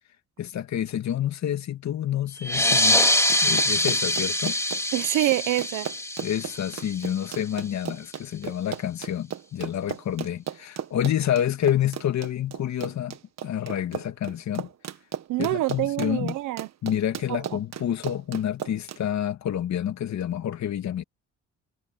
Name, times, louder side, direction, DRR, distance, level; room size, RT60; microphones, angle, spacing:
voice 1, 0.4-3.0 3.4-4.6 6.2-13.2 13.4-14.7 15.4-16.3 16.8-21.0, left 10 dB, 65° left, 2.3 m, -28 dB
sound 1, 2.4-7.5, left 1 dB, 10° left, 2.3 m, -24 dB
Run, 2.5-19.0, right 9 dB, 60° right, 1.5 m, -36 dB
voice 2, 4.9-5.9 15.3-16.7 17.3-17.6, right 16 dB, 90° right, 1.1 m, -26 dB
cardioid pair, 90°, 30 cm